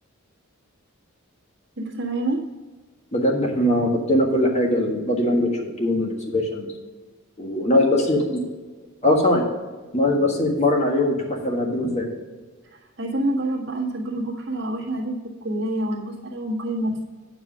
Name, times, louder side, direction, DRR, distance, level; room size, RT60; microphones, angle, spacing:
voice 1, 1.8-2.5 13.0-17.0, right 1 dB, 55° right, -2 dB, 1.6 m, -27 dB
voice 2, 3.1-5.5 5.8-6.7 7.4-8.4 9.0-9.4 9.9-12.1, left 1 dB, 30° left, 1 dB, 1.5 m, -21 dB
9.3 x 4.8 x 6.2 m, 1.3 s
head